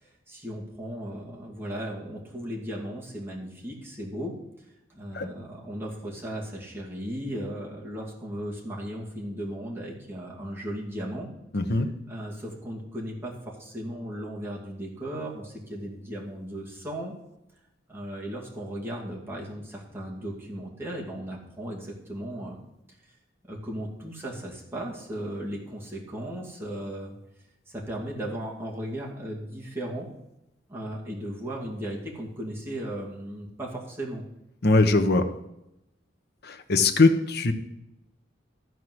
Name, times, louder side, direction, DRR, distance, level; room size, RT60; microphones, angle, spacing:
voice 1, 0.0-4.3 4.9-11.3 12.1-17.1 17.9-22.6 23.5-27.1 27.7-30.1 30.7-34.2, right 1 dB, 10° right, -4 dB, 2.4 m, -36 dB
voice 2, 11.5-11.9 34.6-35.3 36.4-37.5, left 3 dB, 55° left, 8 dB, 1.0 m, -21 dB
14.0 x 4.7 x 7.7 m, 0.87 s
head